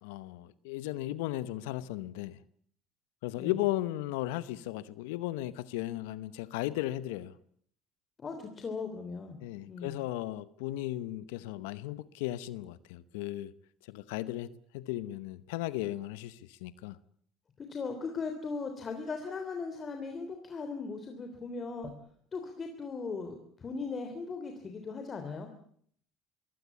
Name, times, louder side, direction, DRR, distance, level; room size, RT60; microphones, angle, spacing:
voice 1, 0.0-2.4 3.2-7.3 9.4-13.5 13.9-17.0, left 15 dB, 85° left, 0.9 m, -36 dB
voice 2, 8.2-9.4 9.7-10.0 17.6-21.9 22.3-25.5, left 4 dB, 35° left, 3.3 m, -38 dB
23.0 x 17.0 x 8.4 m
supercardioid pair, 90°, 0 cm